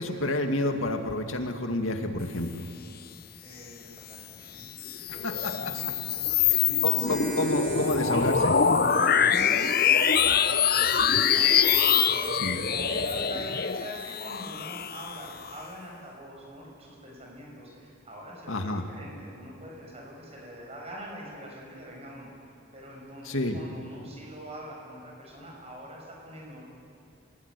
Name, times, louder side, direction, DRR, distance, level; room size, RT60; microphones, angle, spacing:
voice 1, 0.0-2.6 5.2-5.5 6.8-8.6 12.4-12.6 18.5-18.8 23.2-23.6, left 1 dB, 80° left, 5 dB, 2.2 m, -29 dB
voice 2, 3.4-4.7 5.1-5.9 6.2-7.2 8.8-12.4 12.8-26.7, equal, 30° right, -2 dB, 7.0 m, -44 dB
sound 1, 4.6-15.5, left 7 dB, 45° left, 0.8 m, -24 dB
sound 2, 6.9-13.2, right 2 dB, 50° right, 6.1 m, -41 dB
28.0 x 18.0 x 9.8 m, 2.4 s
head